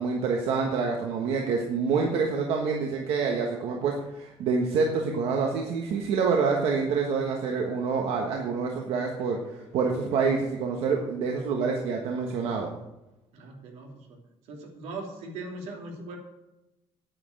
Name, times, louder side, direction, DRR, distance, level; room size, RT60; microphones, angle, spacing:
voice 1, 0.0-12.7, right 5 dB, 65° right, 1 dB, 1.4 m, -27 dB
voice 2, 13.3-14.2 14.5-16.2, right 2 dB, 85° right, 1 dB, 2.9 m, -40 dB
9.5 x 9.5 x 6.5 m, 0.96 s
cardioid pair, 170°, 11 cm